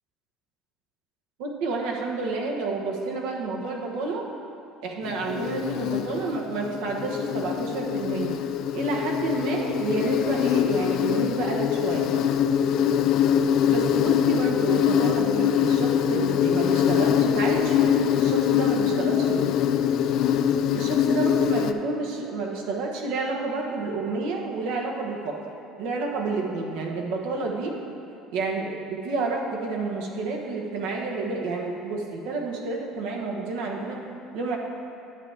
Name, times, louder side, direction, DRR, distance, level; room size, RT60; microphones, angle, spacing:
voice 1, 1.4-4.3 4.8-8.4 8.7-12.1 13.6-19.5 20.7-25.4 25.8-27.8 28.3-34.0 34.3-34.6, right 3 dB, 80° right, 0 dB, 1.1 m, -29 dB
Insect, 5.0-21.7, left 9 dB, 60° left, 0.3 m, -23 dB
9.7 x 7.4 x 3.4 m, 2.7 s
supercardioid pair, 105°, 0 cm